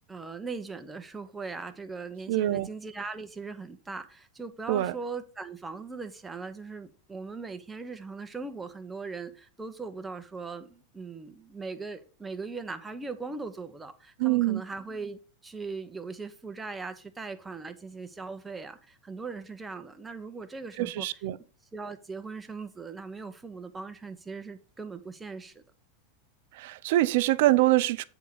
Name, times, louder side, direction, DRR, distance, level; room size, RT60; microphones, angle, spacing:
voice 1, 0.1-21.2 21.7-25.6, right 4 dB, 10° right, 0.9 m, -39 dB
voice 2, 2.3-2.7 4.7-4.9 14.2-14.6 20.8-21.4 26.6-28.0, right 16 dB, 65° right, 0.5 m, -24 dB
8.1 x 3.6 x 6.4 m
supercardioid pair, 125°, 0 cm